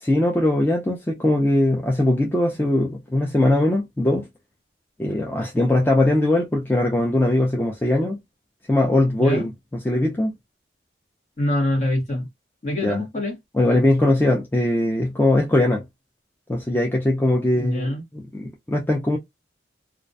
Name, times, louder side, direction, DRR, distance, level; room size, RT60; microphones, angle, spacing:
voice 1, 0.0-4.3 5.0-8.2 8.7-10.3 12.8-13.0 13.5-15.8 16.5-19.2, left 1 dB, 10° left, 0.3 m, -21 dB
voice 2, 11.4-12.3 12.6-13.4 17.5-18.0, left 1 dB, 40° left, 1.0 m, -24 dB
2.3 x 2.1 x 2.5 m
head